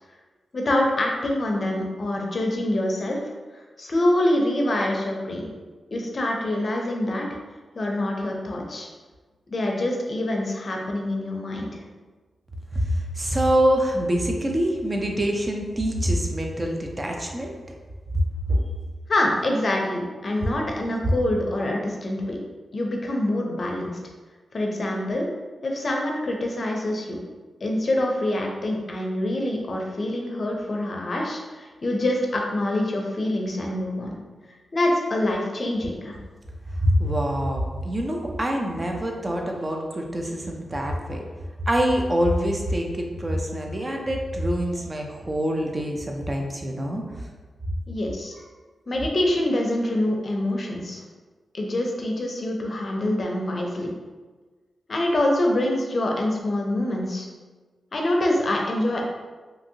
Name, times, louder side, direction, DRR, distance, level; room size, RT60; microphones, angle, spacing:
voice 1, 0.5-3.2 3.8-5.5 5.9-7.3 7.8-8.9 9.5-11.8 19.1-22.4 22.7-23.9 24.5-25.3 25.6-27.2 27.6-34.1 34.7-36.2 47.9-48.4 48.9-51.0 51.5-53.9 54.9-57.3 57.9-59.0, left 1 dB, 50° left, 0 dB, 0.5 m, -25 dB
voice 2, 12.7-17.6 18.5-18.7 36.8-41.2 41.7-47.3, equal, 30° right, 1 dB, 0.4 m, -25 dB
2.8 x 2.6 x 2.6 m, 1.3 s
cardioid pair, 85°, 0 cm